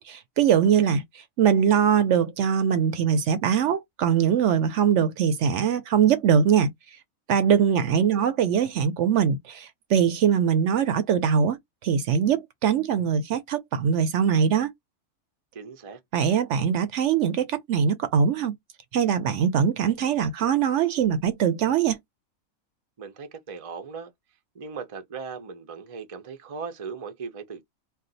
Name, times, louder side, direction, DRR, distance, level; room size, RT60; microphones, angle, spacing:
voice 1, 0.0-6.7 7.3-14.7 16.1-18.6 18.9-22.0, right 7 dB, 65° right, 0.8 m, -22 dB
voice 2, 15.5-16.0 23.0-24.1 24.5-27.6, right 5 dB, 50° right, 0.4 m, -38 dB
2.5 x 2.3 x 3.8 m
omnidirectional pair, 1.5 m